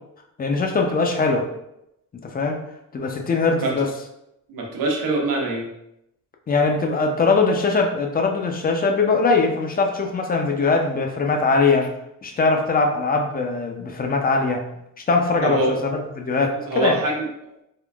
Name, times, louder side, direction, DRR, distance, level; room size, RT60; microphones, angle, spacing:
voice 1, 0.4-1.5 2.1-2.6 2.9-3.9 6.5-11.9 12.2-14.6 15.1-15.6 16.2-17.0, left 4 dB, 25° left, 3 dB, 0.5 m, -21 dB
voice 2, 4.5-5.7 15.4-15.7 16.5-17.3, right 2 dB, 65° right, -1 dB, 0.9 m, -24 dB
3.6 x 2.4 x 2.3 m, 0.81 s
cardioid pair, 105°, 36 cm